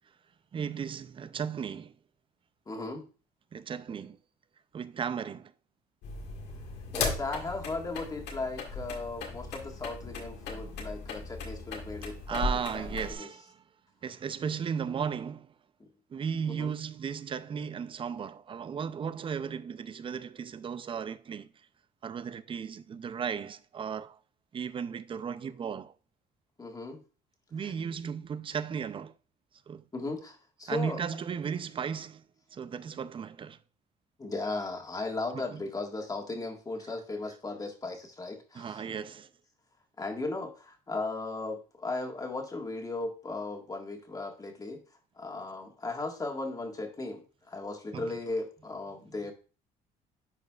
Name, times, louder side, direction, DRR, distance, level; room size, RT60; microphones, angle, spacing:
voice 1, 0.5-1.9 3.5-4.2 4.7-5.5 12.3-13.6 14.0-15.5 16.1-21.5 22.0-24.2 24.5-25.9 27.5-29.1 29.7-29.8 30.7-32.2 32.5-33.6 35.3-35.6 38.5-39.3 47.9-48.1, right 7 dB, 30° right, 0.4 m, -35 dB
voice 2, 2.7-3.1 6.9-12.9 13.2-13.3 15.8-15.9 16.6-16.7 26.6-27.0 27.6-27.7 29.9-31.0 34.2-38.8 40.0-44.8 45.2-49.3, left 3 dB, 20° left, 1.6 m, -36 dB
sound 1, 6.0-13.1, left 4 dB, 80° left, 1.8 m, -37 dB
10.5 x 4.9 x 2.4 m
cardioid pair, 110°, 17 cm